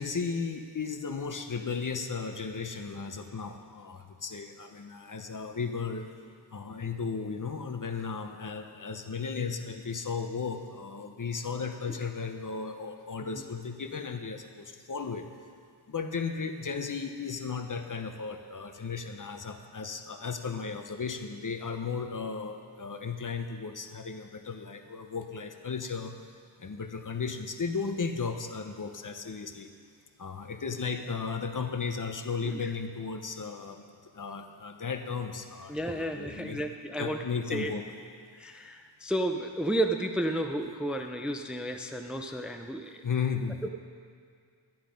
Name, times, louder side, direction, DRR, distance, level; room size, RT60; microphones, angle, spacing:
voice 1, 0.0-6.1 6.5-15.2 15.9-26.2 26.6-29.7 30.2-36.6 37.0-37.8 43.0-43.6, left 5 dB, 45° left, 7 dB, 0.8 m, -35 dB
voice 2, 35.7-37.7 38.3-43.0 43.6-43.7, right 1 dB, ahead, 5 dB, 0.5 m, -32 dB
11.0 x 10.5 x 5.2 m, 2.2 s
wide cardioid pair, 85°, 45 cm